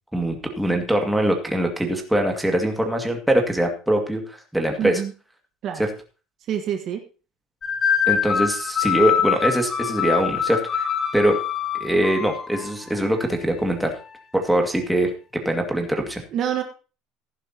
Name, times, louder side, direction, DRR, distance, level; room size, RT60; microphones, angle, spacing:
voice 1, 0.1-5.0 5.8-5.9 8.1-10.9 11.1-11.4 11.8-13.9 14.3-16.2, right 1 dB, 5° right, 2 dB, 2.2 m, -22 dB
voice 2, 4.8-5.1 5.6-5.8 6.5-7.0 16.3-16.6, right 9 dB, 45° right, 5 dB, 1.5 m, -26 dB
sound 1, 7.6-12.7, left 8 dB, 30° left, 1.2 m, -24 dB
15.0 x 11.0 x 2.9 m, 0.34 s
cardioid pair, 145°, 0 cm